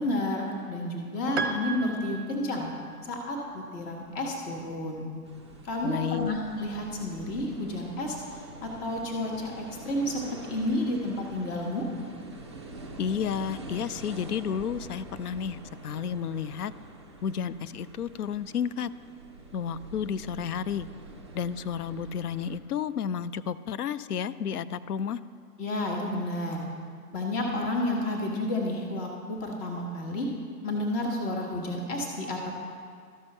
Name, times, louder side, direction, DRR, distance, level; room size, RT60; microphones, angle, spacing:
voice 1, 0.0-2.7 3.0-5.0 5.6-8.2 8.6-11.9 25.6-26.6 27.1-30.3 30.6-32.5, left 1 dB, 20° left, 0 dB, 1.1 m, -31 dB
Piano, 1.4-3.1, right 4 dB, 45° right, 0.7 m, -35 dB
sound 1, 5.3-22.6, right 2 dB, 20° right, 0.3 m, -45 dB
voice 2, 5.8-6.3 13.0-16.7 17.2-18.9 19.5-20.9 21.3-25.2, left 7 dB, 75° left, 16 dB, 0.6 m, -31 dB
13.0 x 5.5 x 5.4 m, 2.1 s
hypercardioid pair, 135°, 46 cm